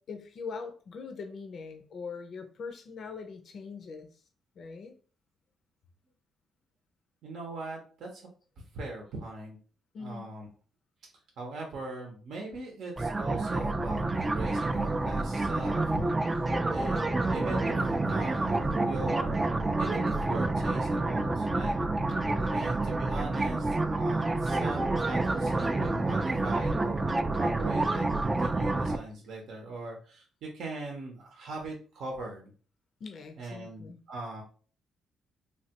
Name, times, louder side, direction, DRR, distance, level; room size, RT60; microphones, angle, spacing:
voice 1, 0.1-4.1 4.6-5.0 9.9-10.3 16.5-16.7 22.3-22.6 33.0-34.0, left 5 dB, 60° left, 5 dB, 0.5 m, -42 dB
voice 2, 7.2-8.3 8.6-9.6 10.0-10.5 11.4-16.4 16.7-19.5 19.8-21.7 22.5-32.5 33.4-34.4, right 2 dB, 70° right, 0 dB, 0.7 m, -40 dB
sound 1, 13.0-29.0, right 2 dB, 20° right, 0.3 m, -28 dB
3.2 x 2.2 x 2.8 m, 0.40 s
cardioid pair, 90°, 0 cm